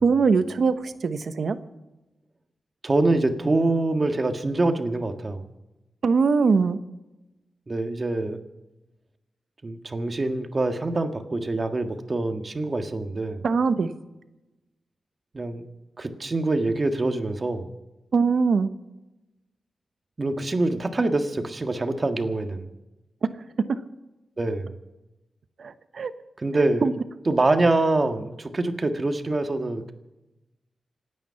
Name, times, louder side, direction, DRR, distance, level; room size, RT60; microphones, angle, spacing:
voice 1, 0.0-1.6 6.0-6.8 13.4-13.9 18.1-18.7 23.6-23.7 25.6-26.1 26.8-26.9, right 5 dB, 70° right, 11 dB, 1.0 m, -22 dB
voice 2, 2.8-5.4 7.7-8.4 9.6-13.4 15.3-15.6 16.0-17.7 20.2-22.7 24.4-24.8 26.4-26.9 27.2-29.9, right 2 dB, 35° right, 6 dB, 1.7 m, -25 dB
26.5 x 9.4 x 5.8 m, 1.0 s
wide cardioid pair, 90°, 0 cm